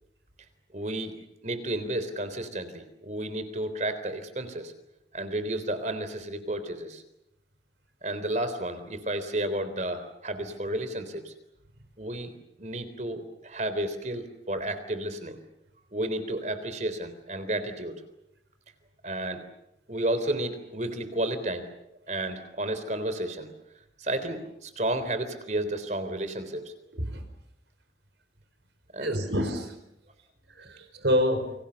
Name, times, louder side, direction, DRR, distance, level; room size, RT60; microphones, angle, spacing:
voice 1, 0.7-1.1 1.4-4.7 5.1-7.0 8.0-11.3 12.0-15.4 15.9-18.0 19.0-19.4 19.9-21.7 22.1-23.5 24.0-26.7 28.9-29.2, right 1 dB, 40° right, 11 dB, 3.6 m, -32 dB
voice 2, 26.9-27.2 29.0-29.8 30.6-31.5, equal, 80° right, 8 dB, 4.9 m, -27 dB
29.0 x 25.0 x 7.0 m, 0.82 s
head